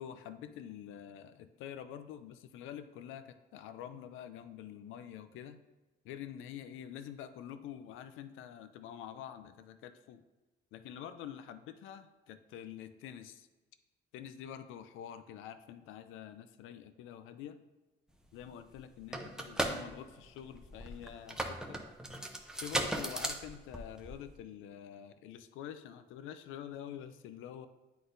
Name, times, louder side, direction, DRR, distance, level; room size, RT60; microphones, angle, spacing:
voice 1, 0.0-5.6 6.0-10.2 10.7-13.5 14.1-17.6 18.3-21.9 22.6-27.7, left 9 dB, 90° left, 11 dB, 0.4 m, -47 dB
sound 1, 18.4-18.5 18.7-24.3, right 1 dB, 5° right, 0.6 m, -37 dB
9.4 x 4.0 x 2.6 m, 1.1 s
cardioid pair, 90°, 20 cm